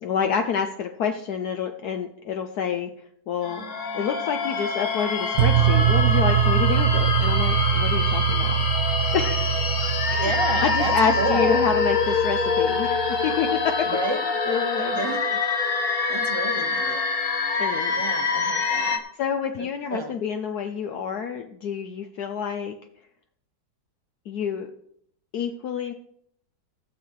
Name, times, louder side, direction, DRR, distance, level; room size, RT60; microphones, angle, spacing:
voice 1, 0.0-2.9 3.3-3.7 3.9-8.5 9.1-9.6 10.1-10.3 10.6-13.7 14.2-15.1 17.6-17.9 19.2-22.8 24.3-24.7 25.3-25.9, left 7 dB, 65° left, 5 dB, 1.2 m, -28 dB
sound 1, 3.4-19.0, left 4 dB, 40° left, 1.0 m, -25 dB
sound 2, 5.4-13.5, right 10 dB, 70° right, 1.0 m, -24 dB
voice 2, 10.2-11.7 13.9-14.2 14.9-15.4 16.1-17.0 17.9-19.0 19.6-20.1, right 2 dB, 30° right, 7 dB, 0.5 m, -30 dB
16.0 x 7.0 x 4.7 m, 0.69 s
omnidirectional pair, 1.9 m